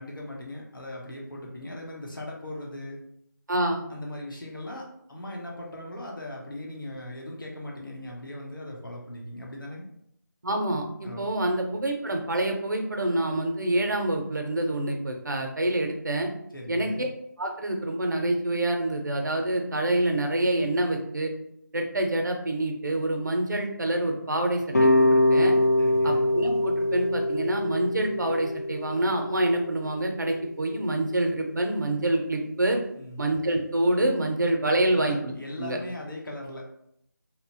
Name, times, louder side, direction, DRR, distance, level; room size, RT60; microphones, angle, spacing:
voice 1, 0.0-3.0 3.9-9.9 11.0-11.3 16.5-17.1 25.8-26.2 32.9-33.2 34.9-36.6, left 1 dB, 85° left, -2 dB, 0.9 m, -39 dB
voice 2, 3.5-3.8 10.4-16.3 16.7-17.1 17.4-21.3 21.7-25.5 26.0-32.8 33.2-35.3 35.6-35.8, right 1 dB, 65° right, 3 dB, 0.6 m, -27 dB
sound 1, 24.7-29.8, left 1 dB, 55° left, 0.4 m, -23 dB
2.8 x 2.1 x 2.7 m, 0.74 s
figure-of-eight pair, 180°, 11 cm